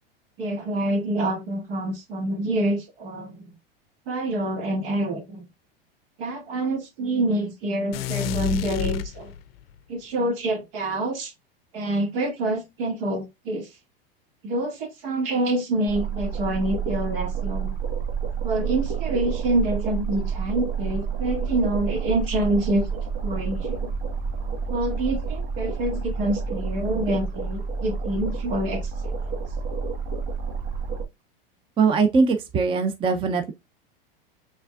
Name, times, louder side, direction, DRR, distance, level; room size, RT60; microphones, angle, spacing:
voice 1, 0.4-3.5 4.1-5.5 6.2-9.3 9.9-11.3 11.7-13.7 14.4-17.7 18.4-23.9 24.7-29.3, right 1 dB, 70° right, 2.1 m, -27 dB
sound 1, 7.9-9.7, left 10 dB, 80° left, 0.5 m, -29 dB
sound 2, 15.9-31.0, right 6 dB, 55° right, 1.6 m, -29 dB
voice 2, 31.8-33.5, right 4 dB, 20° right, 0.5 m, -21 dB
5.3 x 3.5 x 2.3 m
hypercardioid pair, 115°, 29 cm